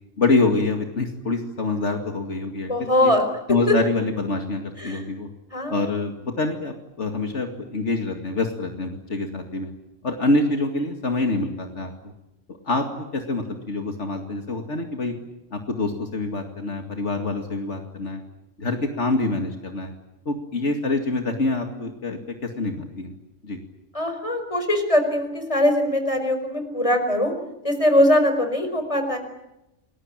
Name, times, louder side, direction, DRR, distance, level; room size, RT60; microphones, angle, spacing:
voice 1, 0.2-3.1 3.5-5.3 5.7-9.7 10.0-11.9 12.6-15.1 15.5-18.2 18.6-19.9 20.3-23.2 23.4-23.6, left 3 dB, 70° left, 4 dB, 2.6 m, -26 dB
voice 2, 2.7-3.2 4.8-5.0 5.5-5.8 23.9-27.3 27.6-29.2, left 1 dB, 25° left, 6 dB, 5.1 m, -21 dB
29.5 x 21.5 x 8.9 m, 0.95 s
omnidirectional pair, 1.3 m